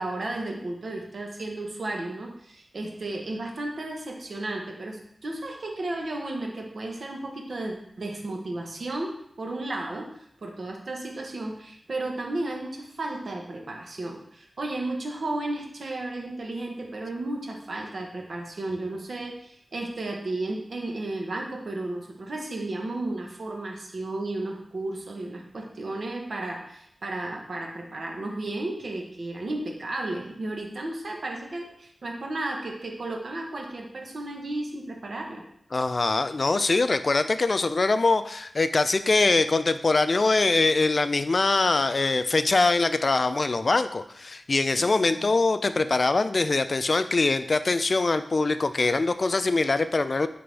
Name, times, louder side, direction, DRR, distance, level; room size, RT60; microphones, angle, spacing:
voice 1, 0.0-35.4 45.1-45.3, right 2 dB, 65° right, 1 dB, 1.0 m, -33 dB
voice 2, 35.7-50.3, left 3 dB, 50° left, 11 dB, 0.3 m, -23 dB
9.0 x 3.4 x 3.4 m, 0.71 s
wide cardioid pair, 90°, 0 cm